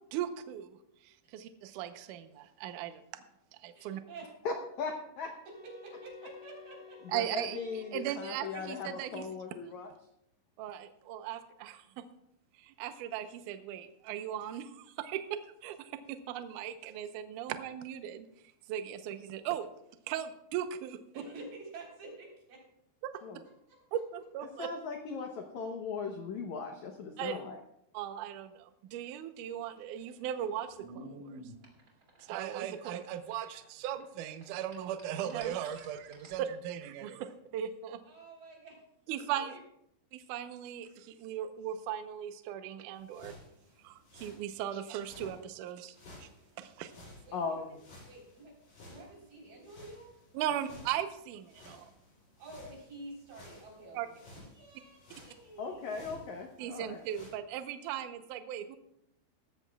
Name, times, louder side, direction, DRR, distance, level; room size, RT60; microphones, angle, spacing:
voice 1, 0.1-0.7 1.0-3.0 3.6-4.0 7.1-9.3 10.6-12.0 12.6-18.3 18.7-19.7 20.1-21.0 23.9-24.7 27.2-27.4 27.9-31.4 32.2-38.0 39.1-39.5 40.1-43.4 43.8-46.0 46.2-46.3 46.6-46.9 50.3-51.9 53.9-54.1 56.6-58.8, right 10 dB, 80° right, 9 dB, 1.8 m, -38 dB
voice 2, 3.7-4.3 5.8-7.2 11.9-12.0 21.1-22.6 23.7-23.8 38.1-38.8 39.3-39.6 47.2-47.7 48.1-48.5 48.8-50.1 50.4-50.6 52.4-56.1, right 2 dB, 55° right, -2 dB, 5.4 m, -49 dB
voice 3, 4.4-5.3 7.1-9.9 23.2-23.4 24.6-27.6 47.3-47.8 55.6-57.0, left 5 dB, 85° left, 3 dB, 1.6 m, -38 dB
sound 1, 5.4-9.3, left 7 dB, 5° right, 2.6 m, -54 dB
sound 2, 29.7-34.0 34.3-36.5, right 1 dB, 25° right, 2.4 m, -51 dB
sound 3, 42.9-45.4 45.9-57.3, left 1 dB, 55° left, 8.1 m, -55 dB
18.5 x 13.5 x 2.4 m, 0.75 s
omnidirectional pair, 4.8 m